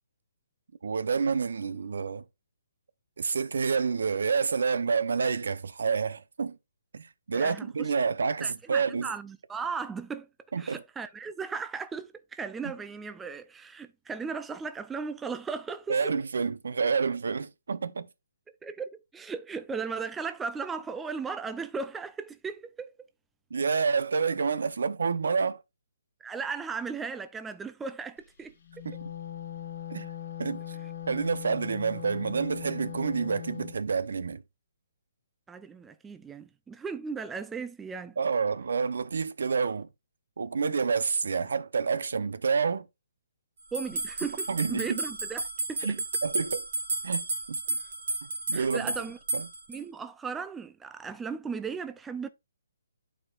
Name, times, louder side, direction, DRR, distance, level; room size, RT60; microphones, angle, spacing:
voice 1, 0.8-2.2 3.2-6.6 6.9-9.1 10.5-10.8 15.9-18.1 23.5-25.6 28.8-29.0 29.9-30.1 30.4-30.8 31.1-34.4 38.2-39.9 40.4-42.9 44.5-45.0 45.8-46.0 46.2-46.6 47.0-47.6 48.2-48.9 49.3-49.5, right 5 dB, 70° right, 0.6 m, -28 dB
voice 2, 7.3-7.9 8.4-10.3 10.6-16.1 18.6-22.9 26.2-28.9 35.5-38.2 43.7-45.9 47.7-47.8 48.5-49.2 49.7-52.3, right 5 dB, 5° right, 0.3 m, -36 dB
Wind instrument woodwind instrument, 28.6-33.8, left 10 dB, 55° left, 1.3 m, -40 dB
sound 1, 43.7-49.8, right 2 dB, 50° right, 1.9 m, -33 dB
11.0 x 4.5 x 2.4 m
hypercardioid pair, 165°, 0 cm